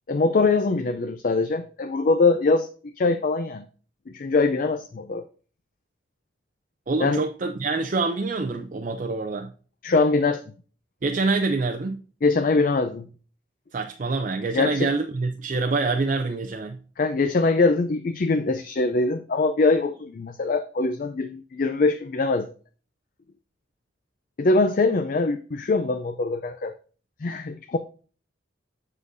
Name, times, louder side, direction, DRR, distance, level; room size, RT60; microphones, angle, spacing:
voice 1, 0.1-3.7 4.1-5.2 7.0-7.2 9.8-10.4 12.2-13.1 14.5-14.9 17.0-22.5 24.4-26.7 27.2-27.8, left 3 dB, 45° left, 0.4 m, -23 dB
voice 2, 6.9-9.5 11.0-12.0 13.7-16.8, right 3 dB, 45° right, 0.5 m, -26 dB
7.5 x 6.3 x 2.6 m
head